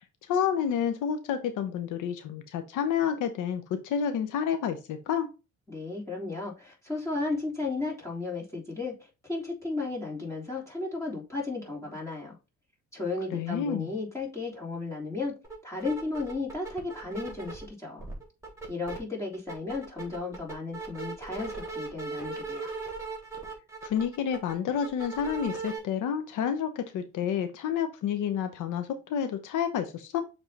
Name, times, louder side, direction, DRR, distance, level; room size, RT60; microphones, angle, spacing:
voice 1, 0.3-5.3 13.3-13.9 23.8-30.2, left 8 dB, 85° left, 0.9 m, -29 dB
voice 2, 5.7-12.3 12.9-15.3 15.6-18.1 18.7-22.7, left 3 dB, 10° left, 3.4 m, -34 dB
sound 1, 15.4-15.6 15.8-17.7 18.0-19.0 19.3-25.8, right 4 dB, 10° right, 3.6 m, -38 dB
7.1 x 3.6 x 4.1 m
cardioid pair, 90°, 30 cm